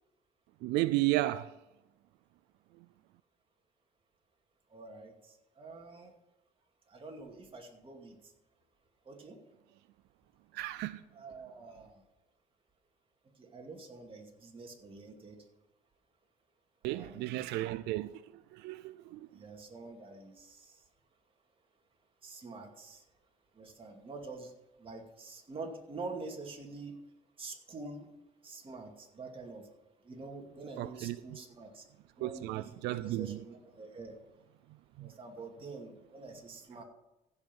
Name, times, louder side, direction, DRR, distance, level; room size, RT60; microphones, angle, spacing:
voice 1, 0.6-1.5 10.5-11.0 16.8-18.2 18.5-19.3 30.8-31.2 32.2-33.4 35.0-35.1, right 17 dB, 90° right, 0.4 m, -33 dB
voice 2, 4.7-6.1 6.9-8.2 9.1-9.4 11.1-12.0 13.4-15.4 16.8-17.5 19.3-20.8 22.2-23.0 23.6-24.5 24.8-27.0 27.4-28.1 28.4-29.7 30.0-31.8 32.2-34.2 35.0-36.8, right 3 dB, 30° right, 2.4 m, -46 dB
15.5 x 5.5 x 6.1 m
cardioid pair, 110°, 17 cm